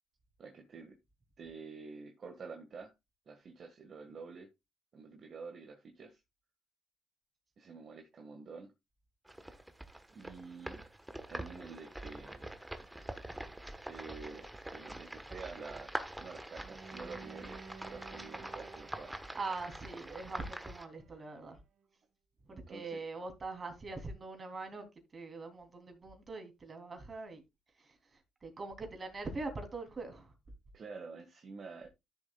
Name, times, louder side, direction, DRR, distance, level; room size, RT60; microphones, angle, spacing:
voice 1, 0.4-1.0 1.4-2.9 3.2-4.5 4.9-6.2 7.6-8.7 10.1-10.9 11.3-12.5 13.8-19.2 22.5-23.0 30.7-31.9, right 4 dB, 50° right, 1.7 m, -48 dB
sound 1, 9.2-20.8, right 1 dB, 10° right, 1.2 m, -45 dB
Bowed string instrument, 16.5-21.5, right 5 dB, 70° right, 1.2 m, -54 dB
voice 2, 19.3-21.6 22.4-27.4 27.8-30.3, right 3 dB, 35° right, 3.2 m, -43 dB
13.0 x 7.0 x 2.4 m
cardioid pair, 90°, 0 cm